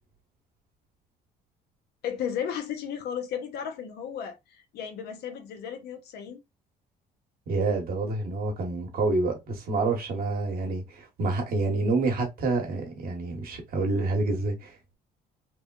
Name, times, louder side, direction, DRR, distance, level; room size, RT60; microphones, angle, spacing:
voice 1, 2.0-4.4 4.7-6.4, left 8 dB, 75° left, 0.8 m, -34 dB
voice 2, 7.5-15.0, right 3 dB, 60° right, 1.2 m, -28 dB
3.3 x 2.1 x 2.3 m
cardioid pair, 110°, 17 cm